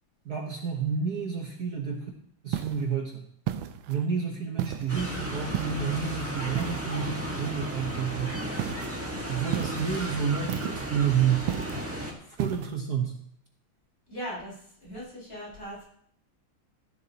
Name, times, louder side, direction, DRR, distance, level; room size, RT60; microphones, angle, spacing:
voice 1, 0.2-2.1 2.4-3.2 3.9-8.5 9.3-11.5 12.4-13.1, right 7 dB, 50° right, 1 dB, 1.6 m, -30 dB
sound 1, 2.5-2.9 3.5-4.0 4.6-5.0 5.5-6.0 6.6-7.1 8.6-8.9 9.5-9.9 10.5-11.0 11.5-11.9 12.4-12.7, right 12 dB, 75° right, 1.4 m, -33 dB
sound 2, 4.9-12.1, equal, 5° right, 1.5 m, -34 dB
voice 2, 14.1-15.8, equal, 40° left, -6 dB, 6.2 m, -39 dB
14.5 x 12.0 x 3.0 m, 0.66 s
omnidirectional pair, 2.3 m